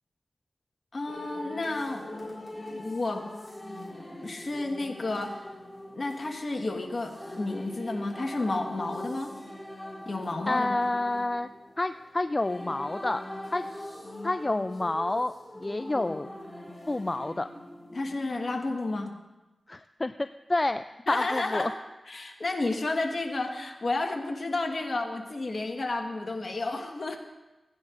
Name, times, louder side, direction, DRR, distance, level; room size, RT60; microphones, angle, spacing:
voice 1, 0.9-3.2 4.2-5.4 5.9-9.3 10.0-10.8 17.9-19.2 21.1-21.7 22.1-27.2, left 2 dB, 55° left, 3 dB, 1.4 m, -31 dB
sound 1, 1.1-18.6, left 1 dB, 15° left, 2.1 m, -42 dB
voice 2, 10.5-11.5 11.8-13.2 13.5-13.7 14.2-16.3 16.9-17.5 19.7-21.7, left 2 dB, 35° left, 10 dB, 0.3 m, -29 dB
17.5 x 9.6 x 2.5 m, 1.1 s
cardioid pair, 45°, 0 cm